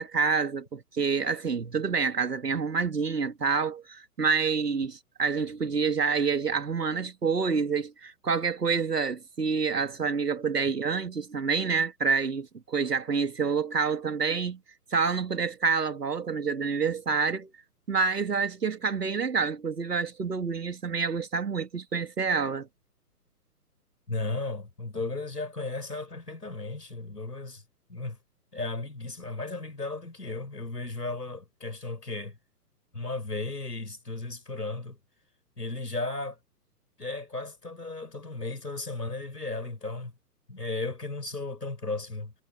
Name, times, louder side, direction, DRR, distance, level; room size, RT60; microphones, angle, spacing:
voice 1, 0.0-14.6 14.9-17.5 17.9-22.7, right 5 dB, 80° right, 2.6 m, -28 dB
voice 2, 24.1-27.6 27.9-28.2 28.5-32.4 32.9-35.0 35.6-36.4 37.0-40.1 40.5-42.3, left 3 dB, 90° left, 6.2 m, -35 dB
figure-of-eight pair, 130°, 47 cm